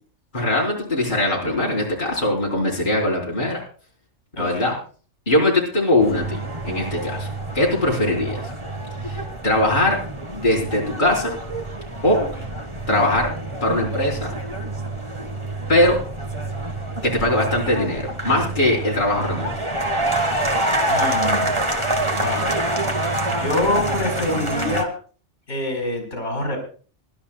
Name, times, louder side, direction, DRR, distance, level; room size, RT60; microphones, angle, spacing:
voice 1, 0.3-3.6 4.4-4.7 5.3-7.3 7.5-8.5 9.0-10.0 10.3-11.4 12.0-12.3 12.9-13.3 13.6-14.3 15.7-16.0 17.0-19.5, left 1 dB, 40° left, -4 dB, 4.1 m, -21 dB
voice 2, 4.4-4.7 20.9-21.6 22.1-22.5 22.8-24.9 25.5-26.6, left 1 dB, 70° left, 3 dB, 4.5 m, -26 dB
sound 1, 6.0-24.8, right 1 dB, 25° right, 1.5 m, -26 dB
26.0 x 12.0 x 2.3 m, 0.40 s
omnidirectional pair, 1.2 m